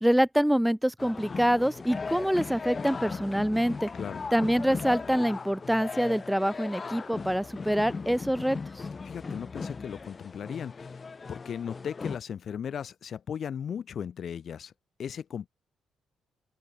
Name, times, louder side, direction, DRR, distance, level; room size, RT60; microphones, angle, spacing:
voice 1, 0.0-3.9 4.3-8.6, equal, ahead, 0.8 m, -25 dB
sound 1, 1.0-12.2, left 4 dB, 30° left, 1.7 m, -38 dB
voice 2, 9.0-14.7 15.0-15.5, left 8 dB, 55° left, 1.4 m, -37 dB
open air
cardioid pair, 90°, 0 cm